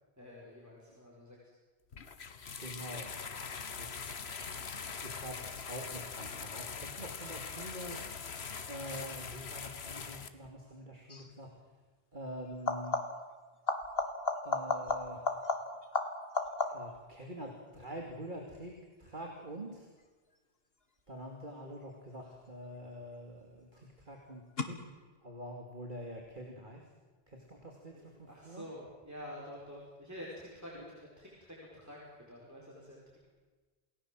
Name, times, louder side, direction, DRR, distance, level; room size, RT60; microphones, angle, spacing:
voice 1, 0.2-1.4 27.9-33.3, equal, 15° right, -5 dB, 5.1 m, -48 dB
sound 1, 1.9-10.3, left 5 dB, 90° left, 1.6 m, -42 dB
voice 2, 2.6-3.2 3.8-4.3 5.0-8.0 8.7-11.5 12.1-13.0 14.4-15.3 16.7-19.9 21.1-24.8 25.2-26.8 27.3-28.7, equal, 50° right, 2 dB, 2.9 m, -46 dB
sound 2, 11.1-11.4 12.5-13.3 13.7-17.0 22.5-23.1 24.6-24.7, left 3 dB, 70° left, 2.3 m, -34 dB
29.0 x 18.5 x 7.7 m, 1.3 s
omnidirectional pair, 1.0 m